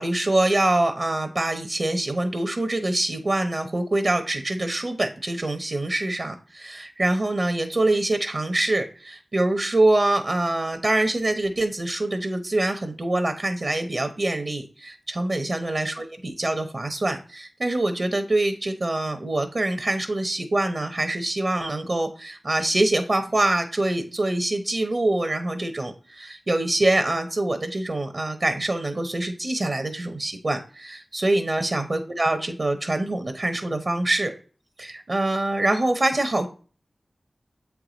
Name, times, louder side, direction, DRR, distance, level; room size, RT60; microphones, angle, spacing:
voice 1, 0.0-34.3 34.8-36.5, right 2 dB, 50° right, 7 dB, 0.8 m, -25 dB
7.7 x 4.7 x 3.9 m, 0.37 s
wide cardioid pair, 80°, 0 cm